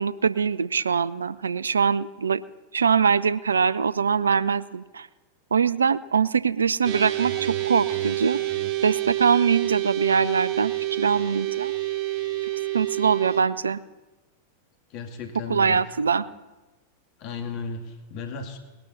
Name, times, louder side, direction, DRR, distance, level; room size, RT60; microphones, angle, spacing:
voice 1, 0.0-2.4 2.7-5.1 5.5-8.4 8.8-11.7 12.7-13.8 15.5-16.3, right 6 dB, 70° right, 18 dB, 0.5 m, -23 dB
sound 1, 6.8-13.4, right 15 dB, 45° right, 1.3 m, -28 dB
voice 2, 14.9-16.0 16.3-16.4 17.2-18.6, left 4 dB, 40° left, 5 dB, 2.0 m, -35 dB
20.0 x 12.0 x 4.2 m, 1.1 s
figure-of-eight pair, 90°, 0 cm